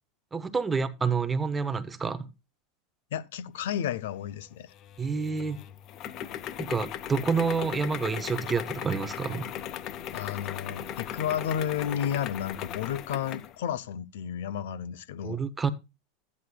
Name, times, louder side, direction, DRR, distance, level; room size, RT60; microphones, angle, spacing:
voice 1, 0.3-2.3 5.0-5.6 6.6-9.5 15.2-15.7, right 5 dB, 10° right, 0.7 m, -28 dB
voice 2, 3.1-4.7 10.1-15.4, left 9 dB, 75° left, 0.8 m, -32 dB
sound 1, 4.7-13.6, left 10 dB, 30° left, 0.5 m, -38 dB
13.5 x 9.7 x 2.2 m
supercardioid pair, 170°, 0 cm